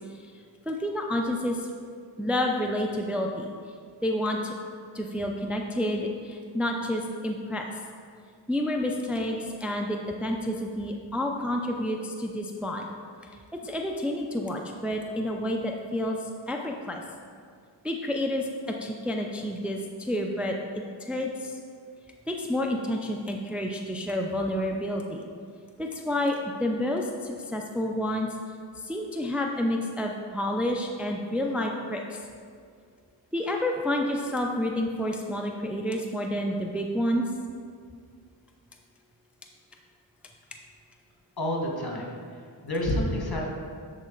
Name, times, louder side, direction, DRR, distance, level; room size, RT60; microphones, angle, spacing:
voice 1, 0.7-1.7 2.2-3.5 4.0-4.5 4.9-7.7 8.5-12.9 13.6-16.2 16.5-17.0 17.8-20.6 21.0-21.6 22.3-25.2 25.8-28.4 28.8-32.2 33.3-37.3, left 1 dB, 5° right, 1 dB, 0.5 m, -29 dB
voice 2, 41.4-43.5, left 1 dB, 55° left, -1 dB, 1.7 m, -29 dB
11.0 x 4.2 x 3.9 m, 2.2 s
wide cardioid pair, 55°, 45 cm